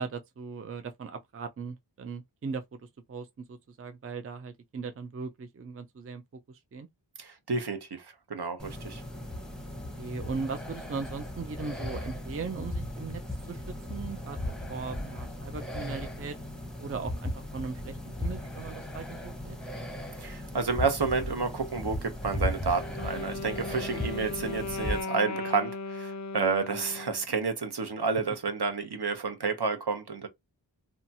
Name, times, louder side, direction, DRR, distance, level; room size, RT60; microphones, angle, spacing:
voice 1, 0.0-2.6 3.1-6.2 6.5-6.9 10.0-13.2 13.5-13.6 13.9-16.3 16.8-19.6, right 5 dB, 35° right, 0.4 m, -38 dB
voice 2, 7.2-9.0 20.2-30.3, right 4 dB, 65° right, 0.8 m, -30 dB
sound 1, 8.6-25.0, left 1 dB, ahead, 0.7 m, -37 dB
Wind instrument woodwind instrument, 22.7-27.3, left 3 dB, 45° left, 0.4 m, -37 dB
2.8 x 2.2 x 2.7 m
wide cardioid pair, 50°, 43 cm